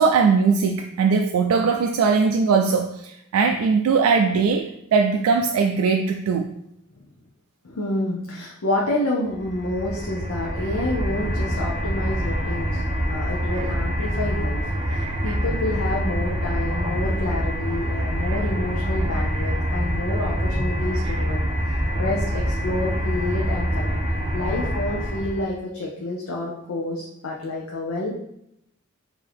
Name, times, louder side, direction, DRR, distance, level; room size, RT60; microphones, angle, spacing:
voice 1, 0.0-6.5, right 5 dB, 90° right, 4 dB, 0.3 m, -20 dB
voice 2, 7.6-14.6 14.9-21.4 21.9-24.0 24.3-28.2, left 2 dB, 85° left, -3 dB, 0.6 m, -28 dB
sound 1, 9.3-25.5, equal, 25° right, 0.5 m, -25 dB
4.6 x 2.7 x 3.4 m, 0.79 s
head